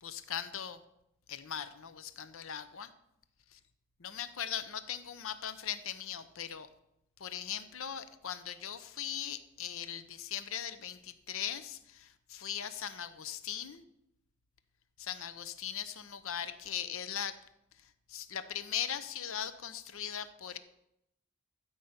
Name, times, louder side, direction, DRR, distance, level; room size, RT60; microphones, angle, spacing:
voice 1, 0.0-0.8 1.3-2.9 4.0-6.7 7.2-13.8 15.0-17.4 17.8-20.6, left 9 dB, 65° left, 12 dB, 0.7 m, -39 dB
13.0 x 5.6 x 8.1 m, 0.81 s
head